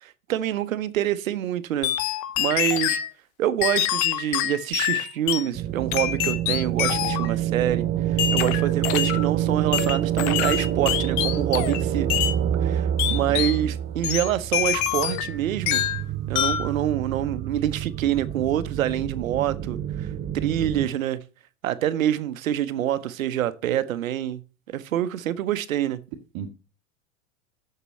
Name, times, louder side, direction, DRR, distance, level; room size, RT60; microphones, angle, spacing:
voice 1, 0.0-1.9 2.4-3.0 3.4-12.1 12.6-15.8 16.3-20.1 20.3-21.2 21.6-24.4 24.7-26.0, right 11 dB, 85° right, 1.0 m, -26 dB
sound 1, 1.8-3.1 3.6-5.5 5.9-7.3 8.2-9.3 9.7-11.8 12.1-12.4 13.0-13.6 14.0-15.3 15.7-16.0 16.3-16.7, left 12 dB, 45° left, 1.1 m, -25 dB
sound 2, 5.5-20.9, right 11 dB, 25° right, 0.8 m, -27 dB
voice 2, 13.0-13.7 26.3-26.5, right 7 dB, 50° right, 1.7 m, -37 dB
6.9 x 6.7 x 7.6 m
hypercardioid pair, 115°, 39 cm